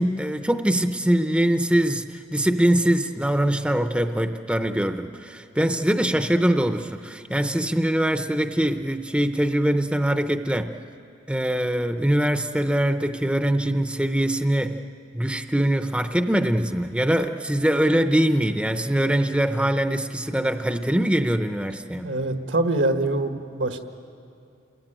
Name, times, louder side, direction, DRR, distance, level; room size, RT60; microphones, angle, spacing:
voice 1, 0.0-10.7 11.3-14.8 15.1-22.1, right 1 dB, 5° right, 7 dB, 0.7 m, -23 dB
voice 2, 22.0-23.8, right 2 dB, 80° right, 6 dB, 1.7 m, -24 dB
29.0 x 21.0 x 9.0 m, 2.6 s
head